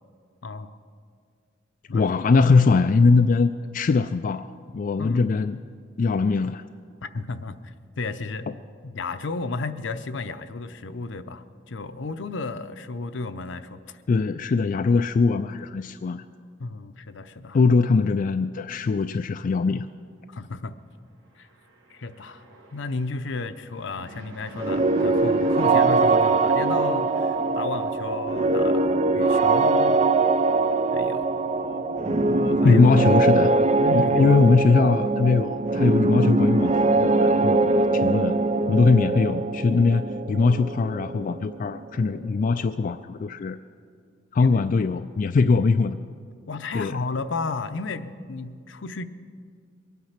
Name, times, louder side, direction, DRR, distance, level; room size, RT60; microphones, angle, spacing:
voice 1, 0.4-0.8 1.9-2.1 5.0-5.2 7.0-8.5 8.8-14.0 16.6-17.6 20.3-20.7 21.4-21.5 21.9-22.4 22.7-28.9 29.1-30.0 30.9-32.8 33.8-34.4 44.4-44.5 46.5-49.1, left 3 dB, 70° left, 10 dB, 0.7 m, -33 dB
voice 2, 1.9-5.6 6.0-6.6 14.1-16.2 17.5-19.9 32.6-33.5 33.9-36.7 37.0-38.3 38.7-43.6 44.3-46.0 46.7-47.0, left 4 dB, 45° left, 8 dB, 0.3 m, -21 dB
Fixed-wing aircraft airplane, 21.3-28.6, right 1 dB, 90° right, 1.8 m, -45 dB
sound 1, 24.6-42.2, right 3 dB, 35° right, 0.5 m, -22 dB
23.0 x 9.4 x 5.8 m, 2.2 s
head